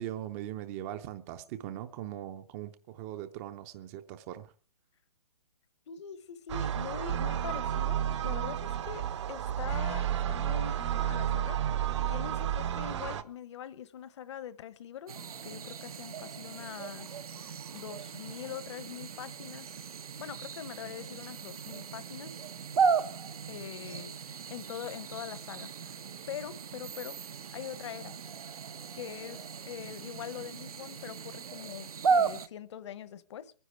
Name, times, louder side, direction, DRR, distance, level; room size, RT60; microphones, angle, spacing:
voice 1, 0.0-4.5, right 12 dB, 25° right, 0.7 m, -40 dB
voice 2, 5.9-15.1 15.4-19.8 20.2-22.4 23.5-25.9 26.3-27.2 27.5-28.2 28.9-33.5, left 9 dB, 50° left, 1.1 m, -43 dB
sound 1, 6.5-13.2, right 10 dB, 50° right, 1.0 m, -31 dB
sound 2, 15.1-32.5, right 5 dB, 70° right, 1.0 m, -35 dB
22.0 x 10.0 x 4.7 m
hypercardioid pair, 145°, 19 cm